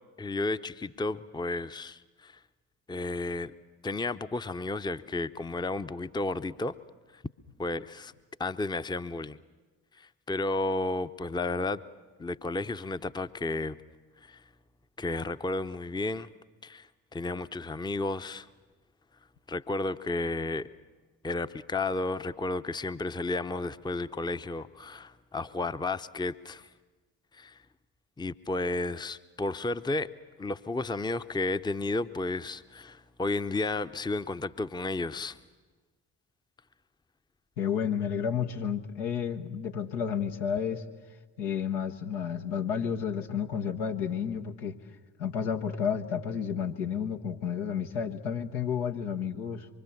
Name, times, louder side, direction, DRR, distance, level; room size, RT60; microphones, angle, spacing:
voice 1, 0.2-2.4 2.9-3.5 3.8-6.8 7.1-7.2 7.6-8.1 8.4-9.4 10.0-11.8 12.2-13.8 14.2-14.4 15.0-16.3 16.6-18.5 19.5-20.7 21.2-26.7 27.3-27.6 28.2-30.1 30.4-35.4, left 2 dB, 10° left, 13 dB, 0.7 m, -32 dB
voice 2, 37.6-40.8 41.4-44.8 45.2-49.7, left 7 dB, 75° left, 4 dB, 1.4 m, -31 dB
24.5 x 24.0 x 7.2 m, 1.3 s
figure-of-eight pair, 40°, 44 cm